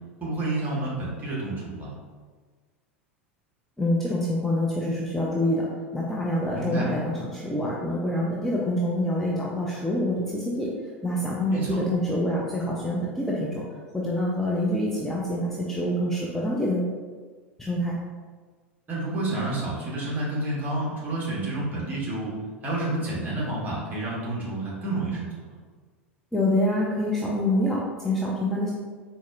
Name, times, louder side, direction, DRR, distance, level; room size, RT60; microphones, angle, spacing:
voice 1, 0.2-1.9 6.5-6.9 11.5-11.8 18.9-22.3 22.6-25.5, right 2 dB, 25° right, -6 dB, 1.2 m, -29 dB
voice 2, 3.8-5.7 5.9-10.7 11.0-13.6 13.9-16.9 17.6-18.0 26.3-28.7, left 1 dB, 5° left, -5 dB, 0.4 m, -26 dB
4.0 x 2.5 x 2.5 m, 1.5 s
figure-of-eight pair, 80°, 7 cm